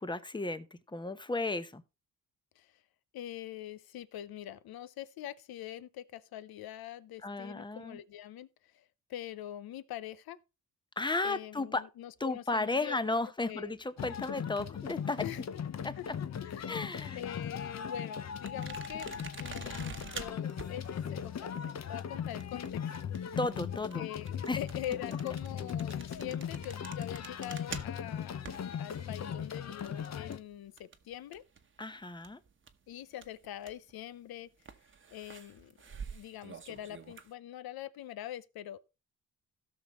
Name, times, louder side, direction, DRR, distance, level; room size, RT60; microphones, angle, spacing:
voice 1, 0.0-1.8 7.2-8.0 11.0-11.8 12.2-15.3 15.8-16.0 16.7-17.2 23.4-24.0 24.5-24.6 31.8-32.4, left 2 dB, 15° left, 0.8 m, -34 dB
voice 2, 3.1-8.8 9.1-10.4 11.2-13.1 13.4-13.7 15.2-15.4 16.0-16.1 16.4-16.8 17.1-19.1 19.4-23.1 24.0-31.4 32.9-34.5 35.1-38.8, left 12 dB, 90° left, 0.7 m, -44 dB
sound 1, 14.0-30.4, left 8 dB, 50° left, 0.8 m, -38 dB
sound 2, 18.5-31.8 32.1-33.9 34.6-37.3, right 6 dB, 35° right, 1.0 m, -48 dB
16.5 x 6.2 x 3.0 m
cardioid pair, 105°, 35 cm